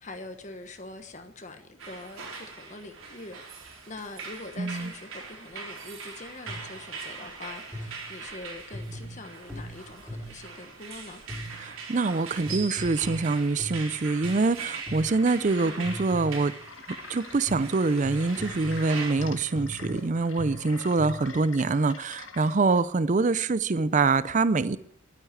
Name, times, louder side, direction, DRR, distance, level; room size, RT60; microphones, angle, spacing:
voice 1, 0.0-11.2 15.6-16.2, left 2 dB, 35° left, 1.3 m, -44 dB
sound 1, 1.8-19.1, right 4 dB, 85° right, 4.0 m, -41 dB
voice 2, 4.6-4.9 11.6-16.5 17.1-24.8, right 3 dB, 35° right, 0.5 m, -25 dB
sound 2, 6.5-6.8 7.7-8.2 8.7-10.5 11.3-11.8 12.5-14.5 14.9-15.4 15.8-16.6 17.5-21.4, equal, ahead, 3.0 m, -40 dB
sound 3, 14.9-22.8, left 5 dB, 75° left, 1.8 m, -46 dB
12.0 x 9.6 x 8.7 m
head